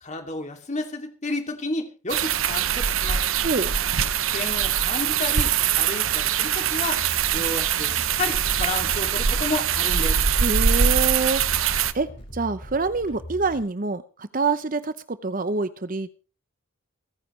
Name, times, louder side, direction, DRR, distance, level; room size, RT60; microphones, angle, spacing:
voice 1, 0.0-3.2 4.3-7.0 7.3-10.2, left 2 dB, 35° left, 4 dB, 2.6 m, -31 dB
sound 1, 2.1-11.9, right 8 dB, 75° right, 0.9 m, -23 dB
voice 2, 3.4-3.7 10.4-11.4 11.9-16.1, right 3 dB, 40° right, 14 dB, 0.7 m, -26 dB
sound 2, 6.6-13.6, equal, 55° left, 5.9 m, -41 dB
28.5 x 10.0 x 3.2 m, 0.34 s
head